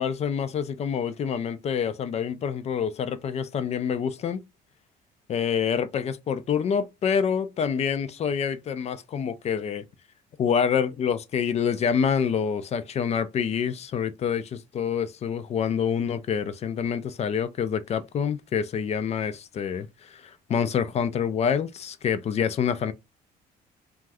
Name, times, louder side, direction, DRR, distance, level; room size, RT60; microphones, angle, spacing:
voice 1, 0.0-4.4 5.3-9.8 10.4-22.9, left 7 dB, 40° left, 0.4 m, -27 dB
2.6 x 2.3 x 3.3 m
cardioid pair, 110°, 17 cm